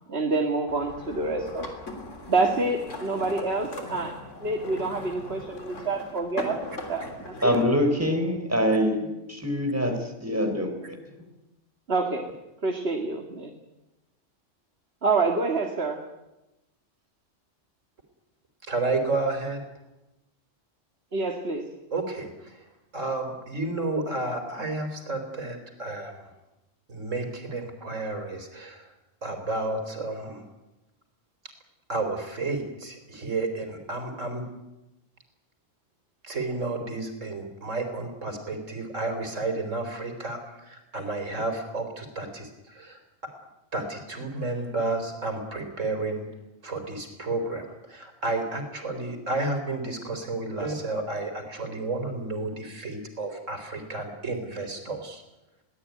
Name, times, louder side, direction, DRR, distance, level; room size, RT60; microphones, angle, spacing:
voice 1, 0.1-1.7 2.3-4.1 4.4-6.6 6.9-7.6 11.9-12.3 12.6-13.5 15.0-16.0 21.1-21.7, right 3 dB, 55° right, 4 dB, 2.2 m, -27 dB
sound 1, 0.7-7.6, left 1 dB, 75° left, 3.7 m, -39 dB
voice 2, 7.4-11.0, equal, 10° right, 4 dB, 3.9 m, -25 dB
voice 3, 18.6-19.6 21.9-22.7 22.9-26.3 26.9-28.9 29.2-30.4 31.9-34.4 36.2-43.3 43.7-46.3 46.6-55.2, right 2 dB, 80° right, 5 dB, 4.3 m, -31 dB
22.5 x 18.0 x 9.5 m, 0.97 s
omnidirectional pair, 1.3 m